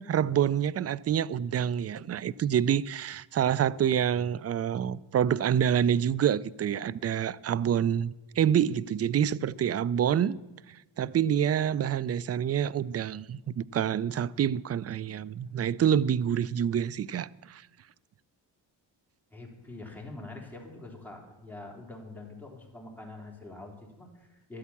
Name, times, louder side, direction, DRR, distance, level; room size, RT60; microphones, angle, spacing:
voice 1, 0.0-10.4 11.0-17.6, right 9 dB, 35° right, 0.4 m, -27 dB
voice 2, 19.3-24.6, left 2 dB, 5° left, 3.7 m, -45 dB
12.5 x 8.3 x 7.2 m
cardioid pair, 65°, 46 cm